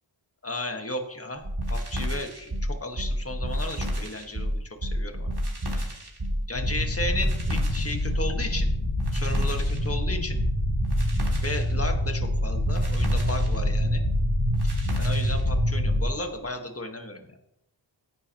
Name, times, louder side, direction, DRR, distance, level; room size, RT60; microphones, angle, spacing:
voice 1, 0.4-5.3 5.7-5.9 6.5-8.7 9.1-10.4 11.4-14.0 14.6-17.3, left 2 dB, 30° left, 4 dB, 1.7 m, -34 dB
sound 1, 1.4-16.1, equal, 55° right, 3.1 m, -29 dB
sound 2, 6.5-16.0, left 1 dB, 70° left, 2.1 m, -27 dB
16.0 x 10.0 x 3.1 m, 0.84 s
wide cardioid pair, 45°, 47 cm